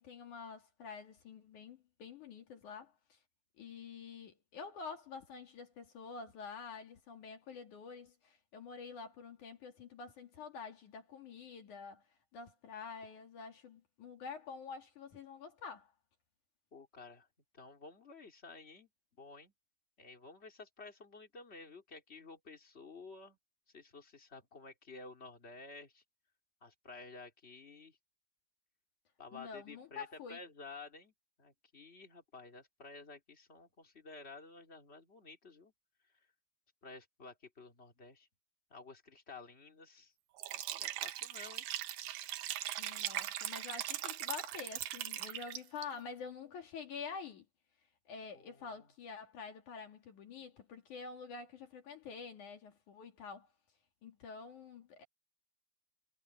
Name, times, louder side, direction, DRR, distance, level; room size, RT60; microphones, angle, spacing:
voice 1, 0.0-3.2 3.6-12.0 12.3-15.9 29.3-30.4 42.8-47.5 48.1-53.5 54.0-55.0, left 5 dB, 50° left, 2.8 m, -48 dB
voice 2, 16.7-17.3 17.5-18.9 19.2-19.5 20.0-23.4 23.7-26.0 26.6-28.0 29.2-31.1 31.4-35.7 36.1-36.2 36.8-38.3 38.7-40.1 40.5-41.6 42.2-42.7 48.3-48.9, left 3 dB, 15° left, 2.7 m, -53 dB
Liquid, 40.4-45.8, right 13 dB, 80° right, 2.0 m, -40 dB
omnidirectional pair, 5.2 m